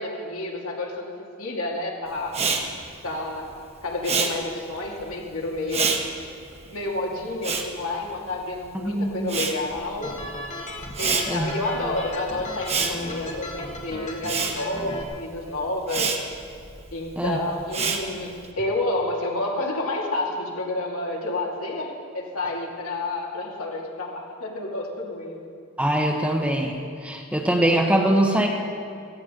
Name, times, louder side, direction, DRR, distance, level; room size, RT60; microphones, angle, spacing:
voice 1, 0.0-2.4 3.0-3.5 3.8-5.9 6.7-10.1 11.0-16.1 16.9-25.5, left 2 dB, 75° left, -2 dB, 2.4 m, -30 dB
Respiratory sounds, 2.3-8.7 9.0-18.5, right 5 dB, 30° right, 1.1 m, -29 dB
voice 2, 8.8-9.3 11.3-11.5 17.2-17.4 25.8-26.7 27.0-28.5, right 1 dB, 5° right, 1 dB, 1.0 m, -22 dB
sound 1, 10.0-15.0, left 1 dB, 35° left, 1.2 m, -36 dB
17.0 x 15.0 x 3.8 m, 2.5 s
head